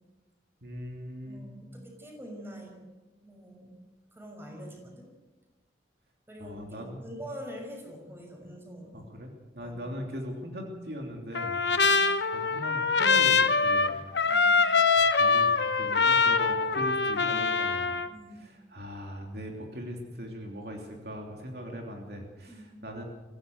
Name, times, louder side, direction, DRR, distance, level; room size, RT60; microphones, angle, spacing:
voice 1, 0.6-1.4 6.4-7.1 8.9-14.0 14.3-14.5 14.8-18.0 18.3-23.0, equal, 60° right, 1 dB, 3.1 m, -40 dB
voice 2, 1.2-2.7 3.2-3.8 4.1-5.1 6.3-9.1 9.6-9.7 11.7-12.0 14.2-14.6 18.0-18.4 22.5-22.7, equal, 15° right, 1 dB, 6.1 m, -45 dB
Trumpet, 11.4-18.1, left 4 dB, 80° left, 1.1 m, -24 dB
24.0 x 16.0 x 8.0 m, 1.2 s
head